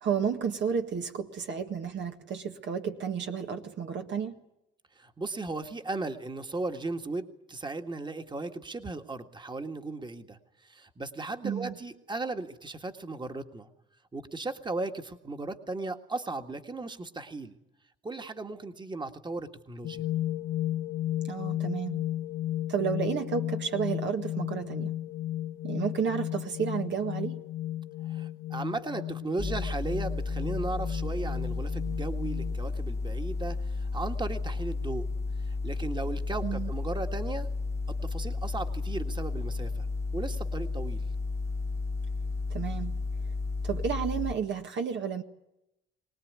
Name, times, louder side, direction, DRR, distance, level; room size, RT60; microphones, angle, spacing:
voice 1, 0.0-4.4 11.4-11.7 21.3-22.0 22.7-24.9 25.6-27.4 36.4-36.7 42.5-42.9 43.6-45.2, right 7 dB, 65° right, 5 dB, 1.7 m, -31 dB
voice 2, 5.0-13.7 14.1-17.6 18.0-20.0 28.0-35.1 35.4-37.5 37.9-39.9 40.1-41.1, right 3 dB, 25° right, 6 dB, 1.8 m, -36 dB
sound 1, 19.8-32.6, left 13 dB, 80° left, 1.3 m, -34 dB
sound 2, 29.4-44.4, left 3 dB, 15° left, 0.9 m, -32 dB
23.0 x 19.0 x 9.6 m, 0.87 s
cardioid pair, 90°, 20 cm